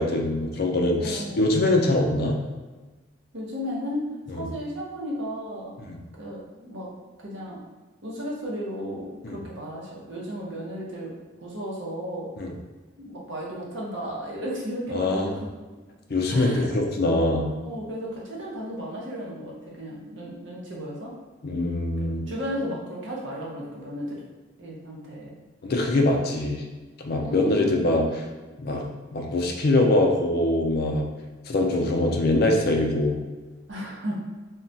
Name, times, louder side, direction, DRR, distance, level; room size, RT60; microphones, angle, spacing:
voice 1, 0.0-2.4 4.3-4.5 5.9-6.0 9.2-9.4 12.4-12.5 14.9-15.3 16.1-17.5 21.4-22.3 25.6-26.6 27.0-28.1 28.6-28.8 29.1-31.0 31.5-33.2, left 2 dB, 50° left, 2 dB, 0.4 m, -23 dB
voice 2, 1.0-1.4 3.3-4.0 4.3-5.7 6.2-6.9 7.2-7.6 8.0-11.1 11.4-12.3 13.0-15.5 16.3-16.7 17.6-21.1 22.3-24.3 24.6-25.4 27.2-28.0 33.7-34.2, equal, 65° right, -4 dB, 0.8 m, -34 dB
2.3 x 2.2 x 3.8 m, 1.3 s
head